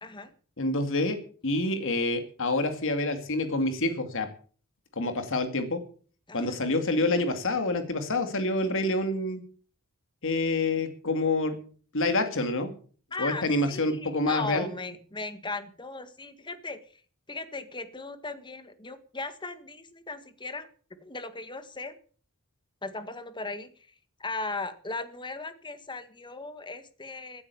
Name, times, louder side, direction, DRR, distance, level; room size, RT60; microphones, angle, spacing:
voice 1, 0.0-0.3 6.3-7.2 13.1-17.0 17.3-20.7 21.0-22.0 22.8-23.9 24.2-27.4, left 3 dB, 20° left, 11 dB, 1.6 m, -38 dB
voice 2, 0.6-4.3 5.0-5.8 6.3-9.4 10.2-11.6 11.9-12.7 13.2-14.7, left 2 dB, 60° left, 8 dB, 2.4 m, -27 dB
16.0 x 9.7 x 7.0 m, 0.43 s
head